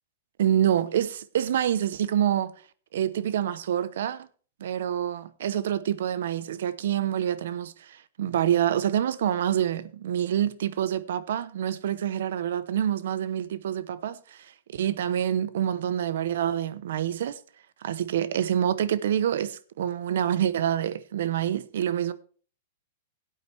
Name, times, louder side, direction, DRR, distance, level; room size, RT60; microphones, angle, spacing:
voice 1, 0.4-2.5 2.9-4.3 4.6-17.4 17.8-22.1, right 10 dB, 75° right, 0.8 m, -27 dB
17.0 x 8.6 x 3.4 m
hypercardioid pair, 150°, 0 cm